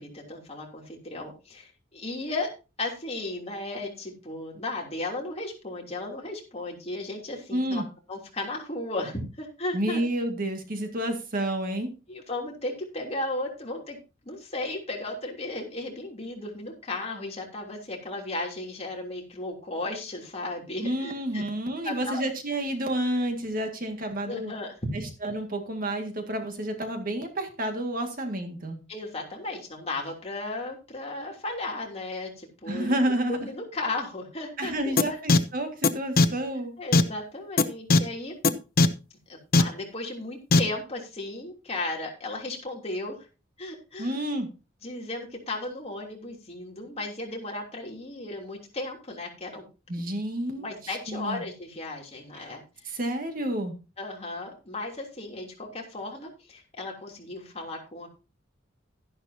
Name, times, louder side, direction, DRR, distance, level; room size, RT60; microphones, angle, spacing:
voice 1, 0.0-2.5 2.8-7.8 8.1-10.0 12.1-14.0 14.2-21.4 21.8-22.2 24.3-25.0 28.9-33.0 33.3-35.0 36.8-38.3 39.3-43.3 43.6-44.2 44.8-49.6 50.6-52.6 54.0-58.1, left 2 dB, 30° left, 0 dB, 3.0 m, -35 dB
voice 2, 7.5-7.8 9.7-11.9 20.8-24.5 25.2-28.8 32.7-33.5 34.6-36.7 44.0-44.5 49.9-51.4 52.3-52.5 52.8-53.7, right 1 dB, 45° right, 5 dB, 2.0 m, -30 dB
sound 1, 35.0-35.1 35.3-35.4 35.8-35.9 36.2-36.3 36.9-37.0 37.6-37.7 37.9-38.0 38.4-38.5 38.8-38.9 39.5-39.6 40.5-40.6, left 3 dB, 50° left, 0.8 m, -17 dB
12.5 x 11.0 x 2.8 m, 0.31 s
head